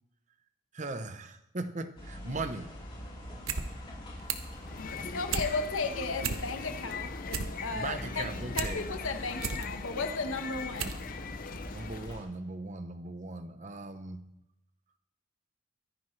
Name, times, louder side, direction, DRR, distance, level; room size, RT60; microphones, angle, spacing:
voice 1, 0.7-2.7 7.7-8.9 11.7-14.2, right 2 dB, 35° right, 9 dB, 0.8 m, -38 dB
sound 1, 2.0-12.2, equal, 25° left, 3.9 m, -44 dB
sound 2, 3.3-3.7 3.9-4.6 4.9-5.5 5.9-6.0 6.2-6.8 7.1-8.7 9.1-9.6 10.2-10.3 10.8-11.0 11.3-11.4, right 5 dB, 90° right, 1.1 m, -34 dB
sound 3, 4.6-12.2, left 5 dB, 45° left, 0.5 m, -41 dB
voice 2, 4.8-11.0, left 3 dB, 85° left, 7 dB, 1.3 m, -35 dB
24.0 x 10.0 x 3.3 m, 0.84 s
head